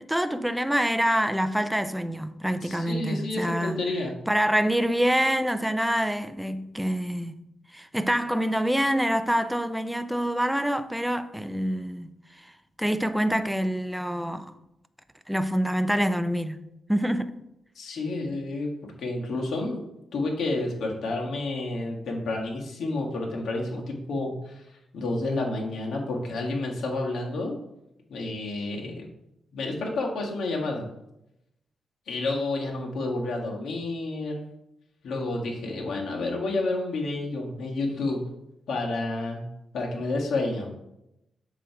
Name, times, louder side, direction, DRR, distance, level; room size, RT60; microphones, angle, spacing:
voice 1, 0.0-3.8 4.3-7.4 7.7-12.5 12.8-14.5 15.3-16.6 16.9-17.4, equal, 5° right, 0.4 m, -26 dB
voice 2, 2.6-4.1 17.7-18.7 19.0-19.8 20.1-24.6 24.9-27.5 28.1-29.1 29.5-30.9 32.1-34.4 35.0-38.2 38.7-39.5 39.7-40.7, left 2 dB, 75° left, 1.7 m, -30 dB
7.4 x 3.2 x 5.8 m
cardioid pair, 120°, 0 cm